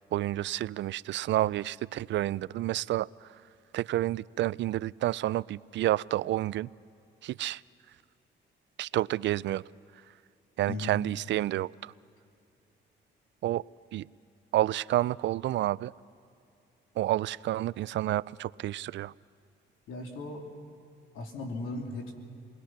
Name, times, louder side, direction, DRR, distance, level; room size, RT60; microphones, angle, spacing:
voice 1, 0.1-3.4 3.7-6.7 7.2-7.6 8.8-9.7 10.6-11.9 13.4-13.6 13.9-14.1 14.5-15.9 17.0-19.1, right 14 dB, 65° right, 20 dB, 0.4 m, -29 dB
voice 2, 10.7-11.0 19.9-20.5 21.1-22.1, left 2 dB, 90° left, 1 dB, 3.1 m, -37 dB
29.5 x 20.5 x 5.9 m, 2.6 s
cardioid pair, 90°, 20 cm